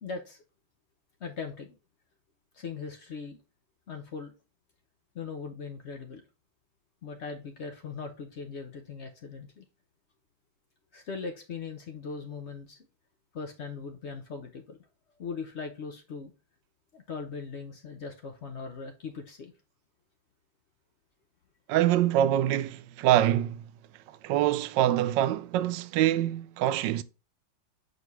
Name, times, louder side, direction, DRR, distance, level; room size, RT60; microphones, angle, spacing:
voice 1, 0.0-0.4 1.2-1.8 2.5-3.4 3.9-4.3 5.1-6.2 7.0-9.6 10.9-12.9 13.3-14.8 15.2-16.3 16.9-19.5, left 5 dB, 80° left, 0.6 m, -39 dB
voice 2, 21.7-23.7 24.1-27.0, right 12 dB, 75° right, 1.1 m, -25 dB
6.6 x 4.9 x 3.1 m
omnidirectional pair, 2.2 m